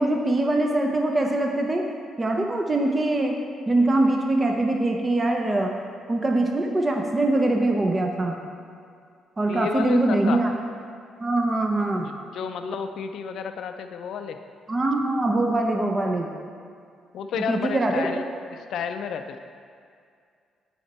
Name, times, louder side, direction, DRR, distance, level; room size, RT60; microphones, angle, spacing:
voice 1, 0.0-1.8 2.2-3.4 3.7-5.7 6.1-8.4 9.4-10.5 11.2-12.1 14.7-16.3 17.3-18.1, right 2 dB, 25° right, 2 dB, 0.6 m, -23 dB
voice 2, 9.5-10.4 12.0-14.4 17.1-18.2 18.7-19.4, left 7 dB, 70° left, 7 dB, 0.4 m, -31 dB
8.9 x 4.3 x 4.1 m, 2.3 s
cardioid pair, 100°, 0 cm